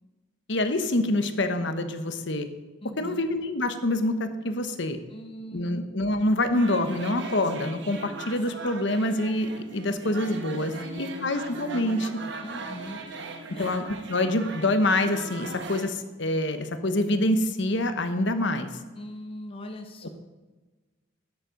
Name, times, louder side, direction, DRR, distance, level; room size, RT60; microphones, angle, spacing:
voice 1, 0.5-2.5 3.0-5.0 5.5-12.1 13.6-13.8 14.1-18.7 20.0-20.1, left 1 dB, 55° left, 8 dB, 1.0 m, -26 dB
voice 2, 2.8-3.2 5.1-5.8 10.7-11.3 12.4-13.7 18.9-20.1, left 1 dB, 25° left, 4 dB, 0.8 m, -41 dB
sound 1, 6.5-15.9, right 3 dB, 55° right, 1.3 m, -39 dB
12.5 x 9.7 x 5.1 m, 1.3 s
head